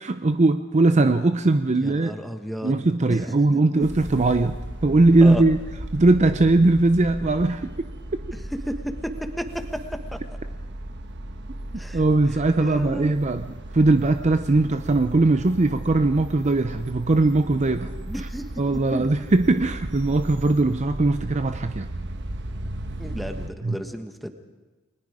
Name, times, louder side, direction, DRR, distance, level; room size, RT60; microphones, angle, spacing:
voice 1, 0.0-2.2 2.6-5.6 5.9-7.9 11.9-17.9 18.6-21.9 23.6-23.8, right 2 dB, 35° right, 9 dB, 0.6 m, -20 dB
voice 2, 1.8-2.8 3.1-3.2 3.5-3.9 5.2-5.4 8.6-8.7 9.4-9.5 11.8-12.0 12.6-13.2 18.0-18.4 18.9-19.1 23.0-24.3, equal, ahead, 6 dB, 1.4 m, -32 dB
sound 1, 3.8-23.5, right 1 dB, 60° right, 1.2 m, -36 dB
29.5 x 20.5 x 4.9 m, 1.2 s
head